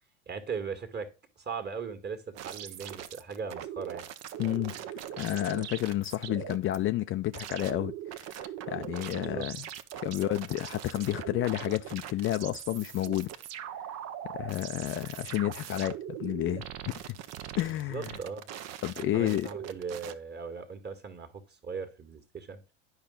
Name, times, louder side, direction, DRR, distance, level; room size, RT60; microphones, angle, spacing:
voice 1, 0.3-1.1 1.4-4.1 9.1-9.5 17.7-18.4 19.1-21.3 21.6-22.6, right 5 dB, 30° right, 1.8 m, -38 dB
sound 1, 2.4-6.8 7.3-20.1, right 10 dB, 45° right, 0.9 m, -41 dB
voice 2, 4.4-4.7 5.2-9.7 10.0-13.3 14.3-17.2 17.6-18.1 18.8-19.5, left 14 dB, 35° left, 0.5 m, -31 dB
10.5 x 5.5 x 3.8 m
hypercardioid pair, 75°, 35 cm